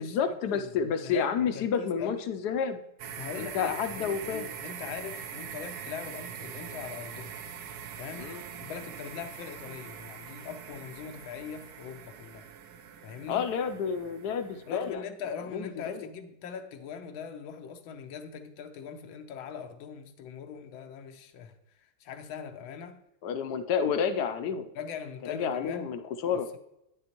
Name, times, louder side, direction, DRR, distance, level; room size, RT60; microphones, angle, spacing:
voice 1, 0.0-2.8 3.4-4.5 8.2-8.4 13.3-15.0 15.5-16.1 23.2-24.7 25.3-26.5, left 7 dB, 70° left, 1.0 m, -30 dB
voice 2, 0.5-2.2 3.2-7.4 8.0-8.3 8.6-12.5 13.0-13.5 14.7-23.0 24.7-25.9, left 7 dB, 90° left, 1.5 m, -41 dB
sound 1, 3.0-14.9, right 8 dB, 65° right, 1.0 m, -43 dB
9.3 x 6.9 x 2.9 m
omnidirectional pair, 2.1 m